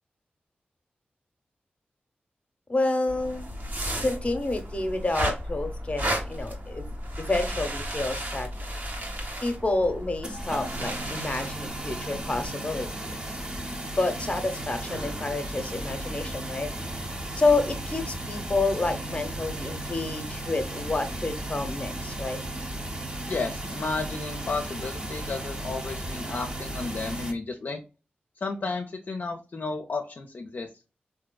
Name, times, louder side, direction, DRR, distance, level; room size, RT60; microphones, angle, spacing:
voice 1, 2.7-3.5 4.0-6.9 7.2-8.5 9.4-12.9 14.0-16.7 17.4-22.4, left 2 dB, 30° left, 7 dB, 0.8 m, -29 dB
sound 1, 3.1-12.5, equal, 55° right, 1.3 m, -34 dB
sound 2, 10.2-27.3, right 1 dB, 25° right, 0.8 m, -35 dB
voice 2, 23.2-27.8 28.4-30.7, left 3 dB, 60° left, 3 dB, 0.5 m, -32 dB
3.6 x 2.7 x 2.2 m, 0.32 s
cardioid pair, 50°, 4 cm